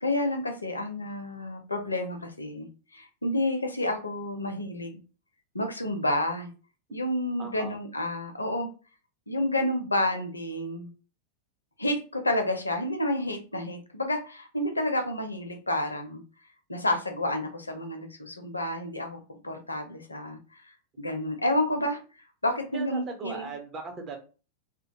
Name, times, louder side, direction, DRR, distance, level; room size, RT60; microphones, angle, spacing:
voice 1, 0.0-5.0 5.5-6.5 6.9-8.7 9.3-10.9 11.8-16.2 16.7-20.6 21.0-22.0 22.4-23.5, left 1 dB, 80° left, 6 dB, 0.4 m, -30 dB
voice 2, 7.4-7.8 22.7-24.2, right 4 dB, 30° right, 2 dB, 0.6 m, -38 dB
2.2 x 2.2 x 2.8 m, 0.35 s
figure-of-eight pair, 90°, 0 cm